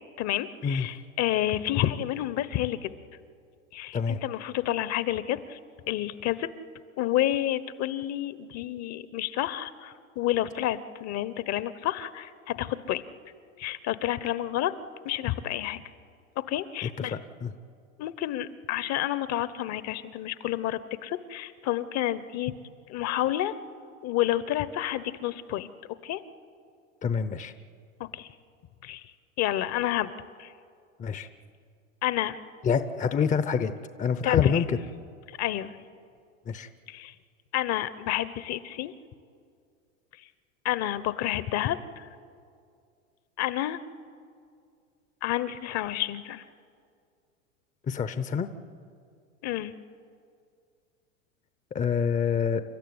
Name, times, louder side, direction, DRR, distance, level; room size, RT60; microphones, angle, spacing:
voice 1, 0.2-2.9 3.7-5.6 5.9-6.5 7.0-13.0 13.6-14.7 15.0-15.8 16.5-17.1 18.0-22.5 22.9-23.5 24.0-25.7 26.0-26.2 28.0-28.3 28.8-29.0 29.4-30.1 30.4-30.5 32.0-32.4 34.2-34.6 35.3-35.8 36.9-37.1 37.5-38.9 40.6-42.1 43.4-43.8 45.2-46.4 49.4-49.7, left 13 dB, 40° left, 15 dB, 1.1 m, -29 dB
voice 2, 16.8-17.5 27.0-27.5 31.0-31.3 32.6-33.7 34.0-34.8 36.5-36.7 47.9-48.5 51.7-52.6, left 6 dB, 20° left, 12 dB, 0.8 m, -27 dB
29.5 x 13.5 x 9.7 m, 2.3 s
hypercardioid pair, 100°, 41 cm